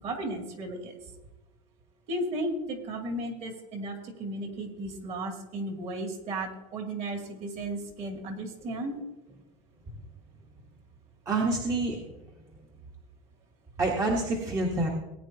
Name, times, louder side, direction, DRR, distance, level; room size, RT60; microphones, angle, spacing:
voice 1, 0.0-0.9 2.1-9.0, right 1 dB, 40° right, 3 dB, 2.6 m, -34 dB
voice 2, 11.3-12.1 13.8-14.9, right 2 dB, 20° right, 0 dB, 1.3 m, -27 dB
18.5 x 9.7 x 2.8 m, 1.0 s
supercardioid pair, 150°, 16 cm